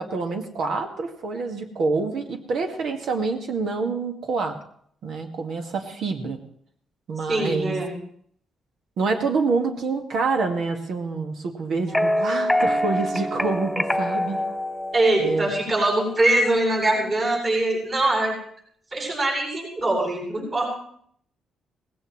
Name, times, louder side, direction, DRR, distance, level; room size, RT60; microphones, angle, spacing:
voice 1, 0.0-4.6 5.0-6.4 7.1-7.8 9.0-14.4 15.2-15.5, right 4 dB, 70° right, 4 dB, 1.9 m, -27 dB
voice 2, 7.3-8.0 14.9-18.3 18.9-20.7, right 2 dB, 40° right, -3 dB, 7.7 m, -22 dB
sound 1, 11.9-15.9, left 1 dB, ahead, 1.6 m, -25 dB
18.5 x 16.0 x 3.2 m, 0.64 s
cardioid pair, 90°, 0 cm